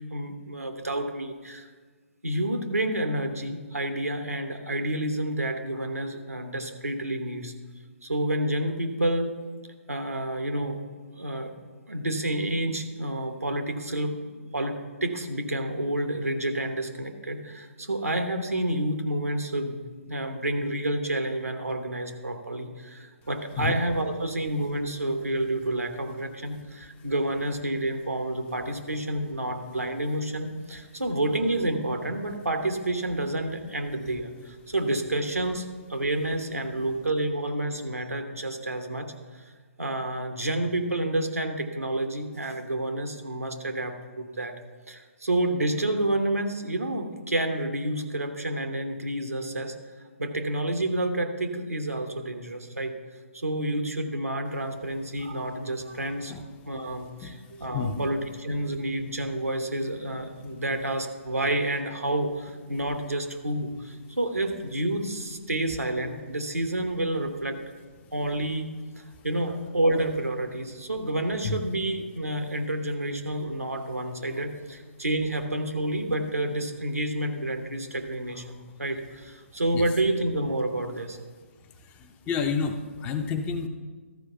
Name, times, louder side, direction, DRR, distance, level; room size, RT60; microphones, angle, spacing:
voice 1, 0.1-1.7 2.2-7.5 8.0-9.3 9.9-10.8 11.1-11.5 11.9-14.1 14.5-39.1 39.8-44.5 44.9-49.7 50.2-53.0 53.3-56.3 56.7-67.6 68.1-68.7 69.0-81.2, right 1 dB, 90° right, 6 dB, 1.1 m, -29 dB
voice 2, 57.2-58.1 68.0-68.1 69.2-69.3 71.4-71.6 79.7-79.9 81.6-83.7, left 5 dB, 15° left, 6 dB, 0.5 m, -31 dB
13.0 x 4.8 x 5.6 m, 1.5 s
figure-of-eight pair, 135°, 8 cm